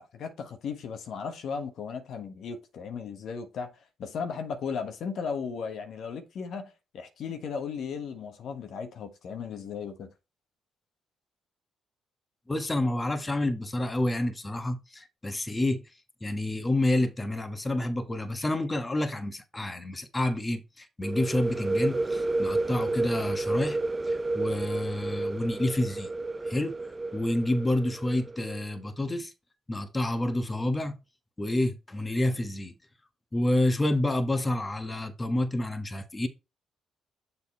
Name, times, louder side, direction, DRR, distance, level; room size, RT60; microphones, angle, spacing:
voice 1, 0.0-10.1, left 6 dB, 70° left, 1.3 m, -36 dB
voice 2, 12.5-15.8 16.2-23.8 24.0-26.1 26.4-26.7 27.1-29.3 29.7-30.9 31.4-32.7 33.3-36.3, left 1 dB, 20° left, 1.3 m, -29 dB
sound 1, 21.0-28.6, right 2 dB, 25° right, 0.5 m, -31 dB
7.1 x 4.0 x 4.2 m
supercardioid pair, 60°, 0 cm